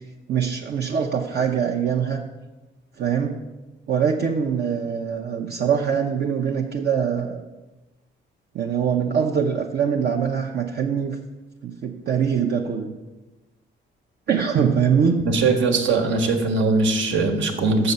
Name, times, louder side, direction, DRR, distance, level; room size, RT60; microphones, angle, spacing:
voice 1, 0.3-2.2 3.0-3.4 3.9-7.4 8.5-11.2 11.6-12.9 14.3-15.2, right 7 dB, 55° right, 0 dB, 0.8 m, -23 dB
voice 2, 15.2-17.9, right 3 dB, 75° right, 5 dB, 1.4 m, -20 dB
6.7 x 6.6 x 6.8 m, 1.1 s
cardioid pair, 90°, 20 cm